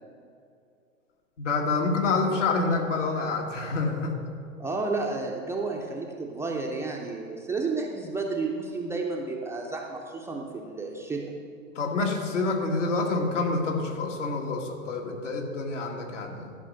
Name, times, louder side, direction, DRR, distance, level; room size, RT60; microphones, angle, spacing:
voice 1, 1.4-4.1 11.8-16.6, left 3 dB, 65° left, 1 dB, 1.9 m, -27 dB
voice 2, 4.6-11.2, right 3 dB, 5° right, -1 dB, 0.6 m, -31 dB
12.0 x 5.5 x 6.3 m, 2.4 s
figure-of-eight pair, 100°, 40 cm